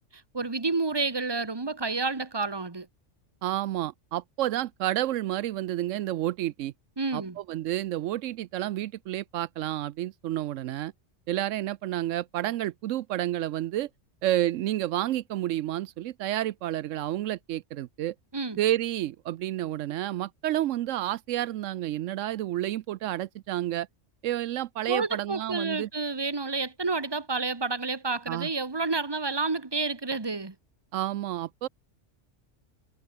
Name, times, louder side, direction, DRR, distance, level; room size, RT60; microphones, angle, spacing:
voice 1, 0.3-2.9 7.0-7.4 18.3-18.6 24.9-30.5, right 3 dB, 20° right, 1.4 m, -29 dB
voice 2, 3.4-6.7 7.1-10.9 11.3-13.9 14.2-18.1 18.6-23.9 24.2-25.9 28.3-28.5 30.9-31.7, right 13 dB, 80° right, 0.9 m, -30 dB
omnidirectional pair, 1.3 m